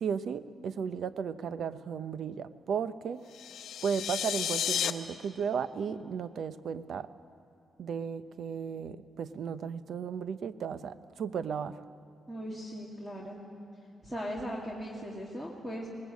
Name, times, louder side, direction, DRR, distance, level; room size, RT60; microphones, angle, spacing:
voice 1, 0.0-3.2 3.8-7.1 7.8-11.7, right 7 dB, 65° right, 13 dB, 0.7 m, -35 dB
sound 1, 3.3-4.9, left 9 dB, 85° left, 0.8 m, -32 dB
voice 2, 12.3-13.4 14.0-15.9, equal, 10° right, -3 dB, 2.3 m, -38 dB
20.0 x 19.5 x 8.3 m, 2.5 s
cardioid pair, 130°, 0 cm